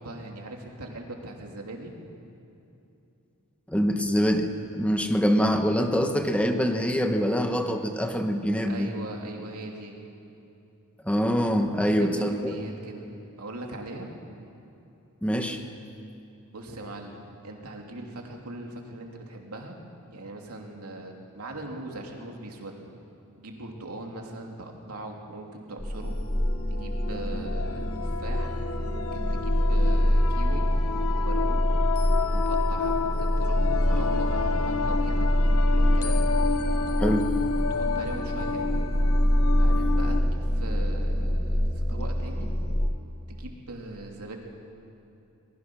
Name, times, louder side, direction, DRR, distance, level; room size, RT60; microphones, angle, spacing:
voice 1, 0.0-1.9 8.6-10.0 11.6-13.1 13.4-14.1 16.5-19.8 20.1-22.8 23.4-26.2 26.7-28.5 28.8-30.7 31.1-31.6 32.3-35.3 35.7-36.2 37.6-38.8 39.6-42.5 43.3-44.4, right 2 dB, 85° right, 1 dB, 2.9 m, -40 dB
voice 2, 3.7-8.9 11.0-12.5 15.2-15.6 37.0-37.3, equal, 5° left, 5 dB, 1.2 m, -24 dB
sound 1, 25.8-42.9, equal, 30° left, 1.3 m, -25 dB
sound 2, 26.1-26.2 26.8-40.2, left 5 dB, 70° left, 0.9 m, -31 dB
23.5 x 20.0 x 6.3 m, 2.8 s
head